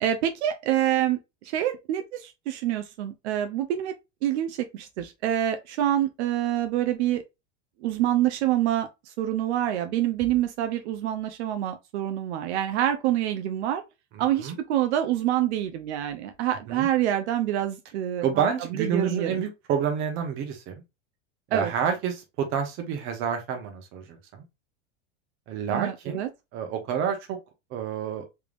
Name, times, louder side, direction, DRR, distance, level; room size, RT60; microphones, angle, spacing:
voice 1, 0.0-3.9 4.2-7.2 7.8-13.8 14.2-18.3 18.7-19.4 21.5-21.7 25.7-26.3, right 12 dB, 75° right, 0.6 m, -26 dB
voice 2, 14.1-14.6 16.7-16.9 18.2-20.8 21.5-24.4 25.5-26.2 26.5-27.4 27.7-28.2, right 7 dB, 35° right, 1.0 m, -29 dB
3.5 x 3.3 x 2.4 m
supercardioid pair, 155°, 34 cm